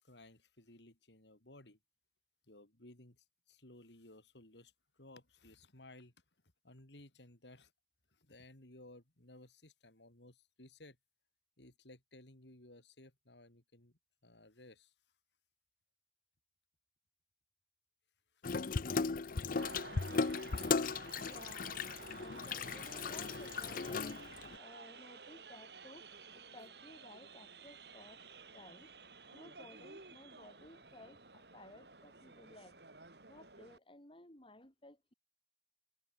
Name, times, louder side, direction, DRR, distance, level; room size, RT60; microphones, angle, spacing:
voice 1, 0.0-1.8 2.5-6.1 6.6-7.7 8.1-11.0 11.6-14.9, left 1 dB, 80° left, 4.5 m, -59 dB
Water tap faucet / Sink (filling or washing), 18.4-24.6, left 4 dB, 50° left, 0.6 m, -37 dB
sound 1, 19.6-33.8, right 4 dB, 65° right, 5.9 m, -53 dB
voice 2, 21.2-21.8 22.2-24.2 24.6-26.1 26.3-28.2 28.5-28.9 29.3-32.8 33.3-35.1, left 1 dB, 30° left, 5.9 m, -57 dB
head